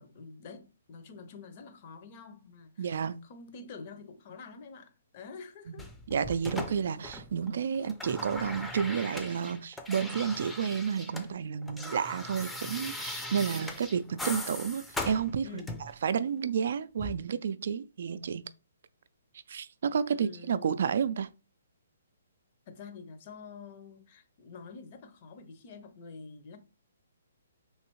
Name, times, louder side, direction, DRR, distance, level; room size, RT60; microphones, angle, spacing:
voice 1, 0.0-5.9 7.7-7.9 15.4-15.7 20.1-20.8 22.7-26.6, left 4 dB, 40° left, 0.7 m, -47 dB
voice 2, 2.8-3.2 5.7-5.8 6.1-15.6 16.0-18.5 19.5-21.3, right 7 dB, 60° right, 0.3 m, -31 dB
sound 1, 5.8-7.5 7.7-11.3 11.5-16.0 17.0-17.2, left 2 dB, 5° left, 0.5 m, -39 dB
3.1 x 2.7 x 3.0 m
hypercardioid pair, 135°, 0 cm